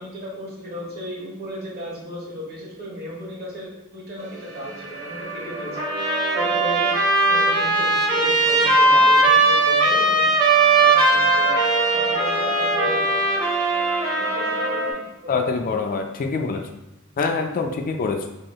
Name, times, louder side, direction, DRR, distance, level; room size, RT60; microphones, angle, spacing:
voice 1, 0.0-5.8 6.3-6.8 7.3-10.3 10.8-11.6 11.9-13.2 14.3-15.4, left 1 dB, 45° right, -4 dB, 1.2 m, -34 dB
sound 1, 4.2-14.9, right 2 dB, 70° right, 0.7 m, -32 dB
Trumpet, 5.8-15.0, right 2 dB, 20° right, 0.7 m, -19 dB
voice 2, 15.3-16.6 17.2-18.3, left 4 dB, 40° left, 4 dB, 0.3 m, -25 dB
2.8 x 2.7 x 4.1 m, 0.95 s
head